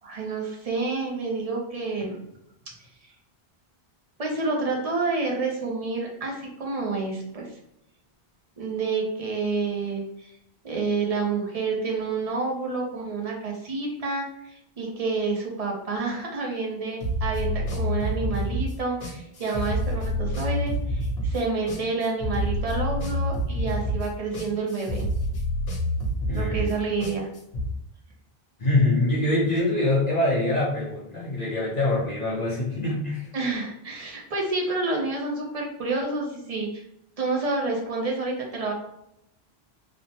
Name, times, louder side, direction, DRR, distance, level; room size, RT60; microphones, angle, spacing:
voice 1, 0.0-2.2 2.7-2.8 4.2-7.5 8.6-10.3 10.6-25.0 26.3-27.3 33.3-36.8 37.2-38.7, right 3 dB, 45° right, 0 dB, 0.6 m, -29 dB
sound 1, 17.0-27.7, equal, 75° left, 1.0 m, -28 dB
voice 2, 26.2-26.6 28.6-33.3, left 2 dB, 45° left, -7 dB, 0.7 m, -24 dB
3.2 x 2.0 x 2.7 m, 0.79 s
omnidirectional pair, 1.1 m